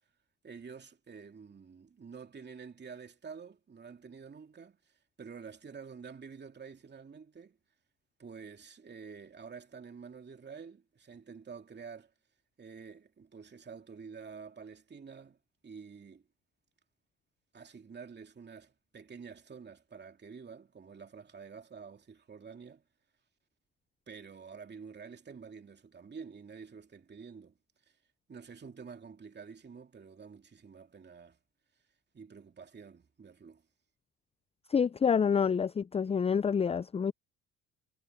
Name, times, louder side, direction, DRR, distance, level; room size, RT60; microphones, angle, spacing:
voice 1, 0.4-7.6 8.2-12.1 12.6-16.3 17.5-22.8 24.1-27.6 27.8-28.0 28.3-31.4 32.1-33.6, right 5 dB, 30° right, 2.6 m, -49 dB
voice 2, 34.7-37.1, left 6 dB, 15° left, 0.4 m, -27 dB
supercardioid pair, 80°, 36 cm